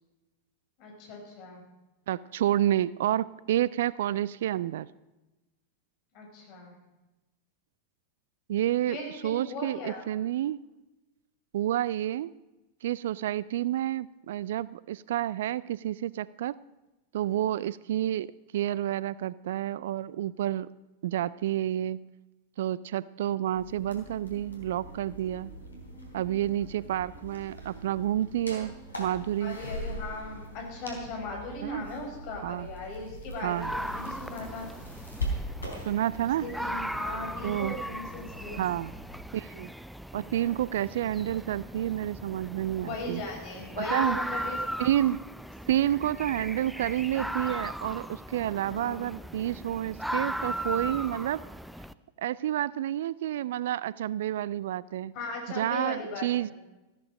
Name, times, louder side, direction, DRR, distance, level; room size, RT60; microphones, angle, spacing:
voice 1, 0.8-1.6 6.1-6.8 8.9-10.1 29.4-34.7 36.4-38.6 42.8-44.6 48.7-49.0 55.1-56.5, left 2 dB, 45° left, 1 dB, 5.2 m, -38 dB
voice 2, 2.1-4.9 8.5-9.0 9.2-10.6 11.5-12.3 12.8-16.6 17.1-18.3 18.5-20.7 21.0-22.0 22.6-25.5 26.1-28.7 29.0-29.6 31.6-31.9 32.4-32.7 33.4-33.7 35.8-36.5 37.4-37.8 38.6-38.9 39.3-39.7 40.1-43.2 43.8-44.2 44.8-45.2 45.7-51.4 52.2-55.1 55.6-56.5, right 12 dB, 55° right, 20 dB, 0.4 m, -29 dB
sound 1, 23.5-39.2, equal, 80° left, 3.7 m, -41 dB
sound 2, 33.6-51.9, equal, ahead, 0.5 m, -37 dB
15.0 x 13.5 x 5.1 m, 1.0 s
figure-of-eight pair, 90°, 0 cm